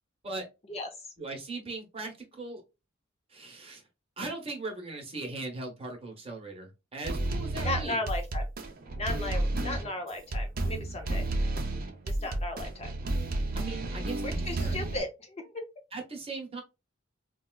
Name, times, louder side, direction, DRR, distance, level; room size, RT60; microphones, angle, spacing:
voice 1, 1.2-2.6 3.3-3.8 4.2-8.0 12.2-12.3 13.5-14.8 15.9-16.6, right 3 dB, 30° right, 2 dB, 1.0 m, -39 dB
sound 1, 7.0-15.0, right 2 dB, 45° right, 0.6 m, -31 dB
voice 2, 7.6-8.5 9.0-11.2 12.1-12.9 14.2-15.7, left 2 dB, 30° left, 5 dB, 0.6 m, -35 dB
4.1 x 2.3 x 2.2 m, 0.25 s
head